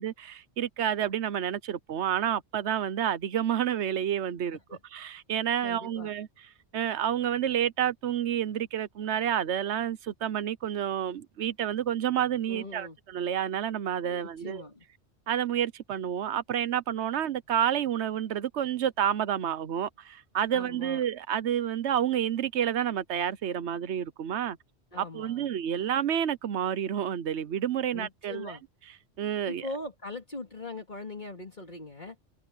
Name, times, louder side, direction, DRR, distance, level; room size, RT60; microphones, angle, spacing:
voice 1, 0.0-4.6 4.9-6.3 6.7-14.6 15.3-24.6 25.0-28.6 29.2-29.7, right 10 dB, 85° right, 1.1 m, -29 dB
voice 2, 5.6-6.1 12.5-13.0 14.1-14.8 20.5-21.0 24.9-25.5 27.9-28.6 29.5-32.2, left 2 dB, 45° left, 2.9 m, -41 dB
omnidirectional pair, 1.1 m